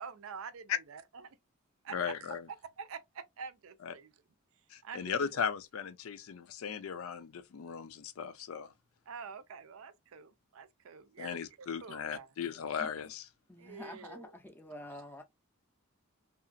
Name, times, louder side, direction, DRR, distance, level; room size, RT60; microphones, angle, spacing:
voice 1, 0.0-1.4 1.8-2.3 2.8-4.1 4.8-5.2 9.1-12.3 13.6-14.3 14.8-15.0, right 6 dB, 80° right, 0.5 m, -47 dB
voice 2, 1.9-2.4 3.8-3.9 4.7-8.7 11.2-13.2, left 7 dB, 85° left, 0.4 m, -37 dB
voice 3, 13.5-15.2, left 1 dB, 10° left, 0.4 m, -47 dB
2.8 x 2.3 x 2.5 m
head